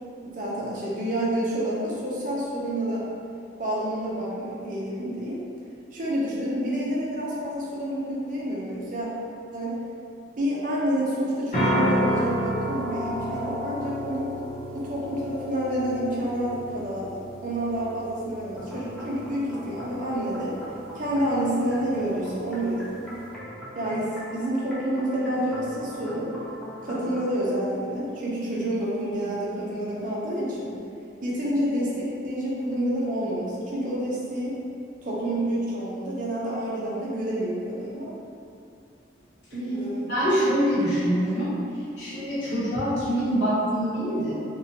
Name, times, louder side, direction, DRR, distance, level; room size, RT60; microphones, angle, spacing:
voice 1, 0.2-3.0 3.6-5.4 5.9-9.1 9.5-9.8 10.4-14.4 14.7-20.5 20.9-23.0 23.7-26.3 26.8-30.7 31.2-34.6 35.0-38.1 39.5-40.1, right 1 dB, 45° right, -6 dB, 0.6 m, -28 dB
sound 1, 11.5-23.3, equal, 45° left, 0.7 m, -32 dB
sound 2, 18.5-27.2, equal, ahead, 0.5 m, -41 dB
voice 2, 40.1-41.6 42.0-44.3, equal, 80° left, -9 dB, 0.9 m, -24 dB
2.6 x 2.2 x 2.8 m, 2.5 s
head